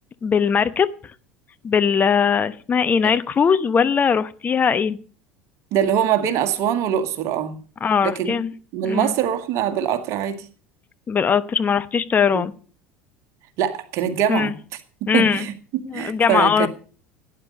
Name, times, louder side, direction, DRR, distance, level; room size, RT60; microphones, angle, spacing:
voice 1, 0.2-0.9 1.6-5.0 7.8-8.5 8.8-9.1 11.1-12.5 14.3-14.5 15.1-15.5 15.9-16.7, left 6 dB, 25° left, 1.0 m, -20 dB
voice 2, 5.7-7.6 8.0-8.4 8.7-10.5 12.3-12.4 13.6-14.6 15.1-15.5 15.9-16.7, right 9 dB, 50° right, 2.0 m, -23 dB
17.0 x 9.9 x 5.2 m
figure-of-eight pair, 70°, 7 cm